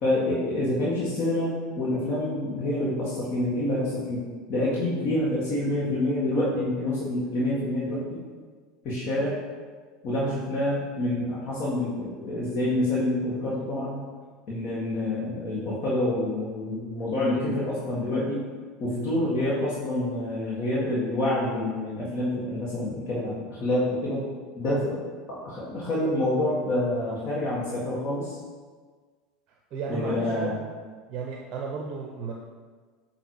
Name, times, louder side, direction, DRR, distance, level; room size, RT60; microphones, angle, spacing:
voice 1, 0.0-8.2 8.8-9.4 10.0-14.0 14.5-18.5 18.8-24.3 24.6-28.4 29.9-30.5, left 1 dB, 45° left, -8 dB, 1.7 m, -27 dB
voice 2, 29.7-30.6 31.1-32.3, right 5 dB, 45° right, 0 dB, 0.6 m, -34 dB
8.0 x 2.9 x 4.7 m, 1.5 s
figure-of-eight pair, 75°, 0 cm